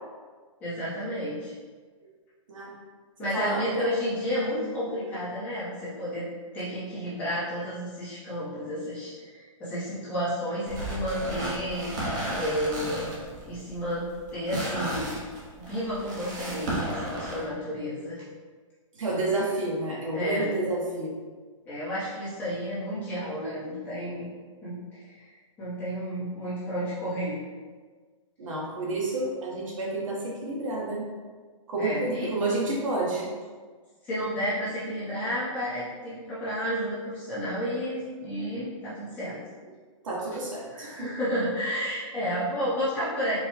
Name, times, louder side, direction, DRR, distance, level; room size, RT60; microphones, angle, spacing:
voice 1, 0.6-1.5 3.2-6.3 6.5-13.1 13.4-15.1 15.6-18.2 20.1-20.5 21.6-24.3 24.6-25.3 25.6-27.4 31.8-32.3 34.0-39.4 39.6-39.7 40.7-43.4, equal, 10° left, -11 dB, 0.9 m, -31 dB
voice 2, 3.3-3.9 18.9-21.2 28.4-31.1 31.7-33.3 40.0-41.1, right 2 dB, 70° right, -4 dB, 1.4 m, -30 dB
sound 1, 10.7-17.4, right 1 dB, 35° right, 0.9 m, -34 dB
4.5 x 2.3 x 4.4 m, 1.5 s
hypercardioid pair, 175°, 17 cm